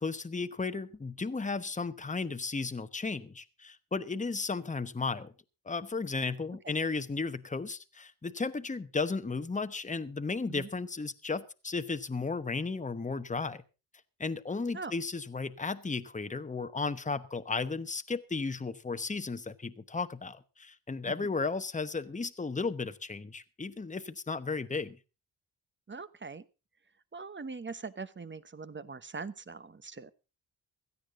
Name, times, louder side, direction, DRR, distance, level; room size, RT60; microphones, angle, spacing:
voice 1, 0.0-5.3 5.6-13.6 14.2-25.0, left 4 dB, 20° left, 1.0 m, -34 dB
voice 2, 25.9-26.5 27.1-30.1, right 4 dB, 25° right, 1.0 m, -42 dB
17.0 x 13.5 x 3.7 m
wide cardioid pair, 105°, 41 cm